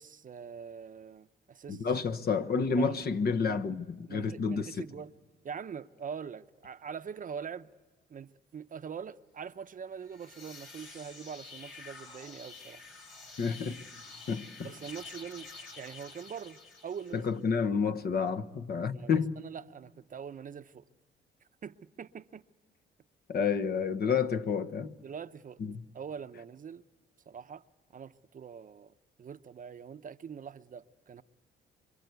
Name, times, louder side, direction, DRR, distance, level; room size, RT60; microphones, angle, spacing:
voice 1, 0.0-1.9 2.8-3.0 3.3-3.8 4.1-5.1 5.4-7.7 8.1-12.8 14.6-15.5 15.7-17.3 18.9-19.1 19.4-20.8 21.6-22.4 25.0-25.6 25.9-26.8 27.3-27.6 27.9-28.9 29.2-31.2, right 7 dB, 40° right, 0.8 m, -43 dB
voice 2, 1.7-4.9 13.4-13.8 14.3-14.7 17.1-19.4 23.3-25.0 25.6-25.8, left 5 dB, 50° left, 1.2 m, -30 dB
sound 1, 10.0-17.4, left 4 dB, 75° left, 6.9 m, -49 dB
27.0 x 24.5 x 8.2 m
cardioid pair, 90°, 20 cm